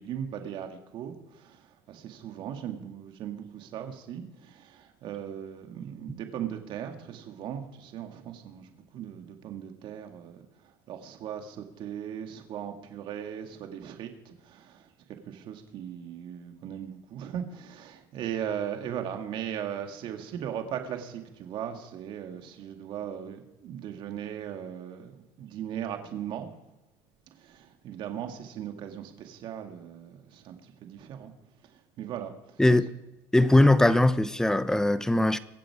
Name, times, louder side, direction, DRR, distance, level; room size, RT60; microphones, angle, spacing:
voice 1, 0.0-10.4 10.9-26.5 27.4-31.3 31.7-32.6, right 9 dB, 60° right, 2.2 m, -38 dB
voice 2, 32.6-32.9 33.3-35.4, left 1 dB, 5° left, 0.8 m, -21 dB
23.5 x 7.9 x 5.0 m
supercardioid pair, 95°, 9 cm